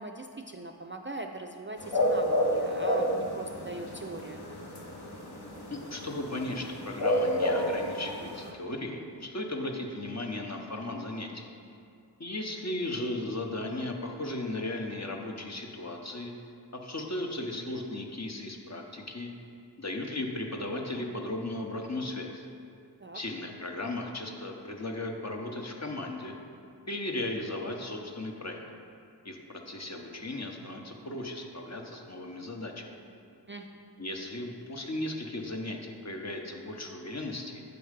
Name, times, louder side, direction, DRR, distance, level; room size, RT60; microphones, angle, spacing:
voice 1, 0.0-4.4 23.0-23.2 33.5-33.7, right 2 dB, 30° right, 3 dB, 0.4 m, -41 dB
sound 1, 1.8-8.5, equal, 65° left, 1.0 m, -30 dB
voice 2, 5.7-11.5 12.2-16.3 16.7-19.3 19.8-22.4 23.1-26.3 26.9-28.6 29.2-32.9 34.0-37.6, left 1 dB, 40° left, 2 dB, 0.8 m, -36 dB
8.1 x 4.3 x 5.0 m, 2.4 s
wide cardioid pair, 40°, 43 cm